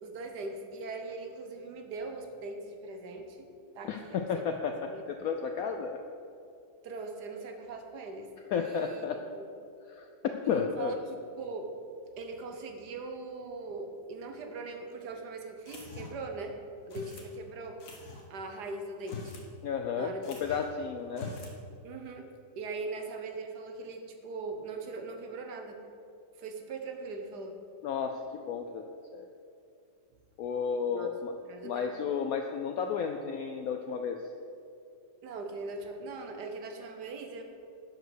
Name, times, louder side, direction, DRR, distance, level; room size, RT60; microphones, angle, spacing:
voice 1, 0.0-3.5 3.7-4.4 4.9-5.0 6.8-9.4 10.5-11.7 12.2-16.5 16.9-17.8 18.3-19.3 20.0-20.6 21.8-22.3 22.6-25.8 26.3-27.6 30.9-31.1 31.5-31.9 35.2-37.4, right 3 dB, 65° right, 4 dB, 1.4 m, -40 dB
voice 2, 3.8-6.0 8.5-9.2 9.9-10.1 10.5-11.0 19.6-21.3 27.8-28.8 29.1-29.3 30.4-31.3 31.6-34.2, left 6 dB, 75° left, 5 dB, 0.8 m, -33 dB
sound 1, 15.7-16.3 16.9-17.3 17.8-18.3 19.0-19.5 19.8-19.9 20.2-20.7 21.1-21.6, left 4 dB, 50° left, 1.4 m, -44 dB
11.0 x 5.0 x 6.4 m, 2.5 s
omnidirectional pair, 2.0 m